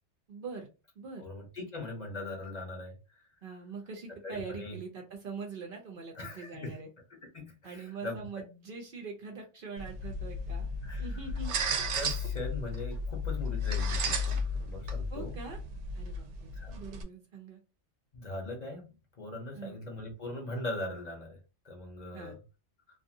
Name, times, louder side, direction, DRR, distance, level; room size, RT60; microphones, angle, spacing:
voice 1, 0.3-0.7 1.0-1.3 3.4-6.9 7.6-10.7 11.0-11.6 15.1-15.6 15.9-17.6 19.5-19.8 22.1-22.4, right 4 dB, 55° right, 2 dB, 0.7 m, -43 dB
voice 2, 1.2-3.3 4.2-4.8 6.1-6.8 7.3-8.2 10.8-11.2 11.9-15.4 16.5-16.7 18.1-21.4 21.6-22.3, left 2 dB, 45° left, 2 dB, 0.8 m, -40 dB
sound 1, 9.8-17.0, left 1 dB, 85° right, 0.9 m, -34 dB
2.5 x 2.5 x 2.6 m, 0.30 s
omnidirectional pair, 1.2 m